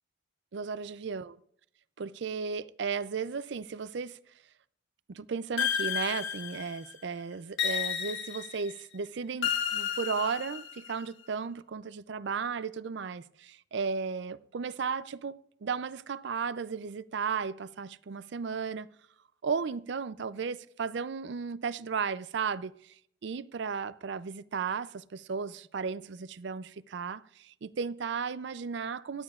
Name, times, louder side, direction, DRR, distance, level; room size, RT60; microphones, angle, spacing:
voice 1, 0.5-1.4 2.0-4.2 5.1-18.9 19.4-23.0 23.2-29.2, right 5 dB, 60° right, 0.4 m, -35 dB
sound 1, 5.6-6.9 7.6-8.7 9.4-10.9, left 8 dB, 70° left, 1.3 m, -32 dB
17.0 x 12.0 x 2.4 m
head